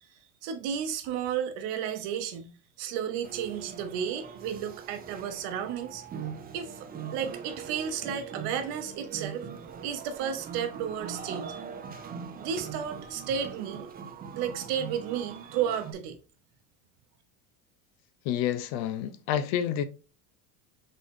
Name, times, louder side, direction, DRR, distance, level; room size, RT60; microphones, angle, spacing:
voice 1, 0.4-6.0 6.5-9.4 9.8-11.6 12.4-13.9 14.4-16.2, right 8 dB, 65° right, 1.0 m, -33 dB
sound 1, 3.2-15.9, right 7 dB, 20° right, 0.5 m, -41 dB
voice 2, 18.3-19.8, left 10 dB, 65° left, 0.7 m, -29 dB
4.0 x 3.3 x 3.4 m
supercardioid pair, 115°, 43 cm